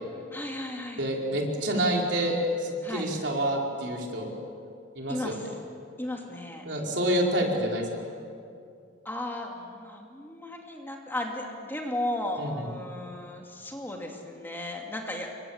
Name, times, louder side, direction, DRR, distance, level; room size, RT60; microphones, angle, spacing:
voice 1, 0.3-1.0 2.8-3.1 5.1-5.4 6.0-6.6 9.0-15.3, left 1 dB, 10° left, 0 dB, 2.7 m, -35 dB
voice 2, 1.0-4.3 4.9-5.4 6.6-7.9 12.4-12.7, right 1 dB, 65° right, -1 dB, 4.8 m, -28 dB
29.0 x 24.5 x 7.4 m, 2.4 s
head